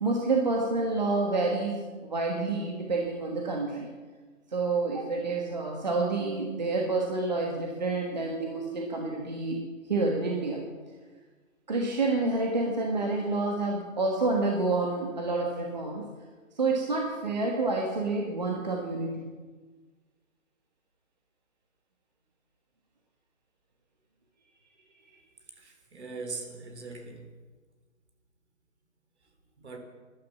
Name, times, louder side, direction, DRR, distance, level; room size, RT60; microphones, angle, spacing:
voice 1, 0.0-3.9 4.5-10.6 11.7-16.1 16.5-19.3, right 3 dB, 30° right, 0 dB, 1.4 m, -28 dB
voice 2, 25.6-27.3 29.6-29.8, right 3 dB, 55° right, 4 dB, 3.3 m, -40 dB
13.0 x 11.5 x 7.4 m, 1.4 s
hypercardioid pair, 180°, 40 cm